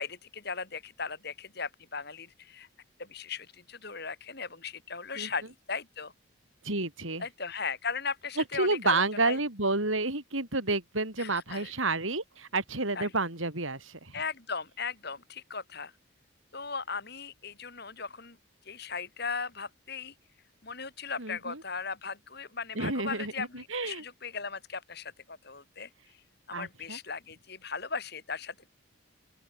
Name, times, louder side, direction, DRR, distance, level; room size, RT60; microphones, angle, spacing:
voice 1, 0.0-2.7 3.0-6.1 7.2-9.4 11.2-11.7 12.9-13.1 14.1-15.9 16.5-18.4 18.7-20.1 20.6-25.9 26.5-28.7, left 5 dB, 50° left, 4.3 m, -37 dB
voice 2, 6.6-7.2 8.4-14.2 21.2-21.6 22.7-24.0 26.5-27.0, right 3 dB, 75° right, 5.1 m, -30 dB
open air
head